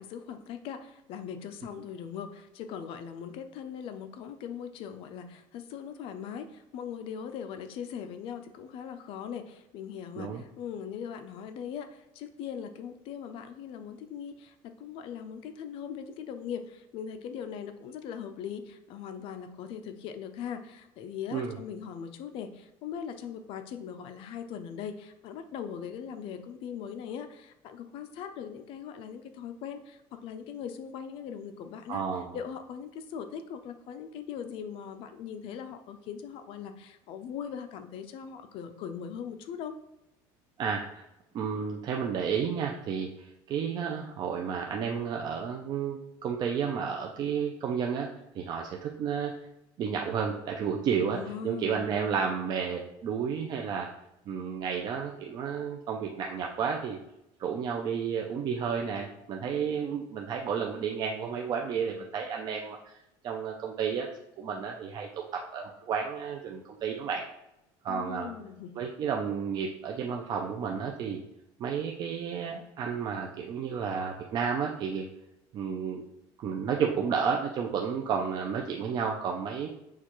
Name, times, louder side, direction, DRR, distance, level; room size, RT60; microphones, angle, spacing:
voice 1, 0.0-39.8 51.1-52.0 67.9-68.8, left 8 dB, 55° left, 8 dB, 0.4 m, -40 dB
voice 2, 31.9-32.4 40.6-41.0 41.3-48.1 48.3-49.3 49.8-51.2 51.4-53.9 54.3-57.0 57.4-63.0 63.2-64.1 64.4-67.2 67.8-68.3 68.7-71.2 71.6-75.0 75.5-76.0 76.4-79.7, right 6 dB, 40° right, 1 dB, 0.4 m, -31 dB
6.5 x 2.3 x 2.9 m, 0.89 s
cardioid pair, 145°, 11 cm